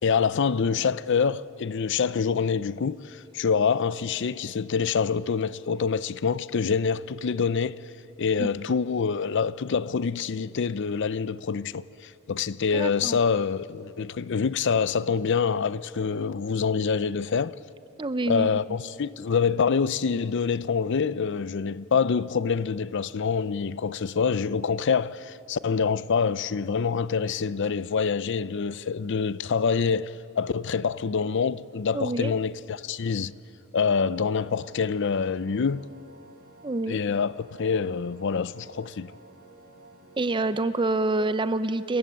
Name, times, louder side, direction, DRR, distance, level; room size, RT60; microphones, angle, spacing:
voice 1, 0.0-7.8 8.2-17.6 18.3-33.3 33.7-35.8 36.9-39.1, left 5 dB, 60° left, 0.5 m, -26 dB
voice 2, 12.7-13.2 18.0-18.6 31.9-32.3 36.6-37.0 40.2-42.0, right 2 dB, 25° right, 0.6 m, -27 dB
sound 1, 33.6-41.4, right 2 dB, 50° right, 3.9 m, -52 dB
28.5 x 14.5 x 9.2 m
head